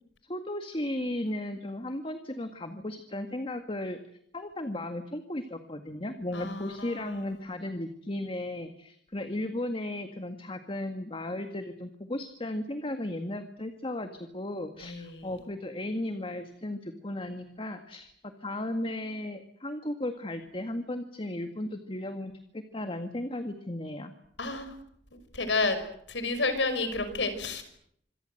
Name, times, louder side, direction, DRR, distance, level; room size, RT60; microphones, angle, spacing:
voice 1, 0.3-4.0 4.3-24.1, left 1 dB, 30° left, 7 dB, 1.9 m, -35 dB
voice 2, 6.3-7.2 14.8-15.3 24.4-24.7 25.3-25.8 26.1-27.6, left 3 dB, 80° left, 10 dB, 5.6 m, -30 dB
26.5 x 23.5 x 7.9 m, 0.70 s
head